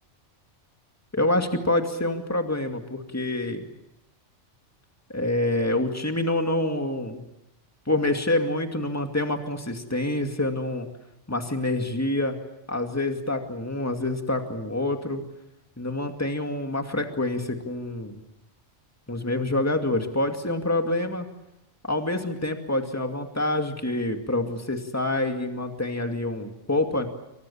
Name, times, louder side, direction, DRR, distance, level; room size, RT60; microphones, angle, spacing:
voice 1, 1.1-3.7 5.1-7.2 7.9-10.9 11.3-12.4 12.7-15.2 15.8-18.2 19.1-21.3 21.8-27.1, left 2 dB, 10° left, 5 dB, 2.3 m, -27 dB
29.0 x 25.5 x 7.2 m, 0.87 s
omnidirectional pair, 1.3 m